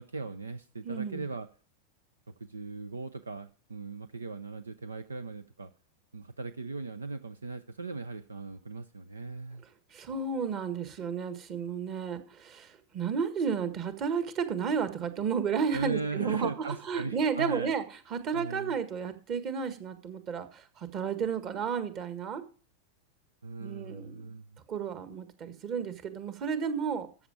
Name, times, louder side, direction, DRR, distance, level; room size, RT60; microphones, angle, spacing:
voice 1, 0.0-1.5 2.4-5.7 6.1-9.6 15.7-17.7 18.3-18.8 23.4-24.6, right 3 dB, 75° right, 13 dB, 0.6 m, -38 dB
voice 2, 0.8-1.2 9.9-17.8 18.1-22.4 23.6-24.2 24.7-27.1, right 6 dB, 35° right, 11 dB, 1.6 m, -32 dB
14.0 x 7.2 x 4.9 m, 0.37 s
figure-of-eight pair, 90°, 0 cm